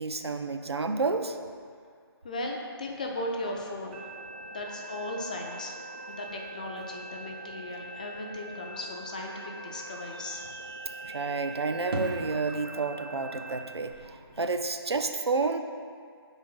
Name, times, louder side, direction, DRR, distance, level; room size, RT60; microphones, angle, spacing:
voice 1, 0.0-1.4 11.0-15.6, right 3 dB, 80° right, 7 dB, 0.5 m, -30 dB
voice 2, 2.2-4.1 4.5-10.5, left 1 dB, 20° left, 1 dB, 0.3 m, -37 dB
sound 1, 2.8-13.6, left 2 dB, 50° left, 0.6 m, -52 dB
sound 2, 3.9-13.6, right 3 dB, 30° right, 0.6 m, -43 dB
sound 3, 8.6-14.6, right 1 dB, 60° right, 0.9 m, -43 dB
4.7 x 4.0 x 5.2 m, 2.1 s
figure-of-eight pair, 150°, 13 cm